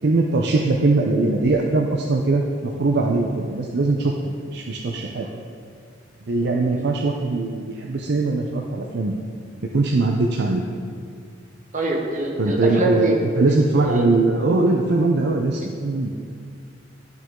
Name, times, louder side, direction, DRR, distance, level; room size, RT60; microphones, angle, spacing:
voice 1, 0.0-5.3 6.2-9.2 9.7-10.6 12.4-16.1, right 3 dB, 65° right, 1 dB, 0.6 m, -21 dB
voice 2, 11.7-13.1 13.5-14.1, right 2 dB, 45° right, 0 dB, 1.2 m, -25 dB
11.5 x 5.9 x 3.7 m, 2.2 s
head